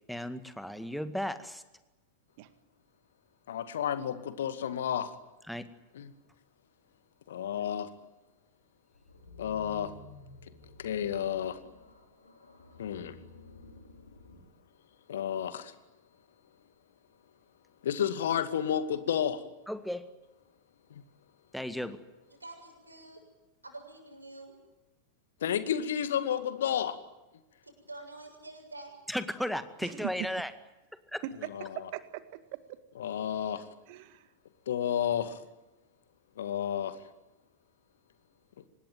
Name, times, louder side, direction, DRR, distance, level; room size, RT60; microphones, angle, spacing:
voice 1, 0.1-1.6 5.5-5.7 19.7-20.1 21.5-22.0 29.1-30.5, equal, ahead, 11 dB, 2.0 m, -35 dB
voice 2, 3.5-5.1 5.9-6.1 7.3-7.9 9.4-9.9 10.8-11.6 12.8-13.2 15.1-15.7 17.8-19.4 20.9-21.0 25.4-27.0 31.5-31.7 33.0-33.7 34.7-35.4 36.4-37.0, left 9 dB, 60° left, 12 dB, 2.2 m, -31 dB
sound 1, 8.9-14.4, left 3 dB, 80° left, 5.5 m, -53 dB
voice 3, 22.4-23.2 23.6-24.6 27.6-29.0, right 2 dB, 80° right, 5 dB, 7.1 m, -47 dB
voice 4, 29.8-30.3 31.2-31.4 31.7-32.8 33.9-34.3, right 14 dB, 50° right, 13 dB, 1.9 m, -40 dB
25.5 x 20.5 x 9.3 m, 1.0 s
figure-of-eight pair, 90°, 0 cm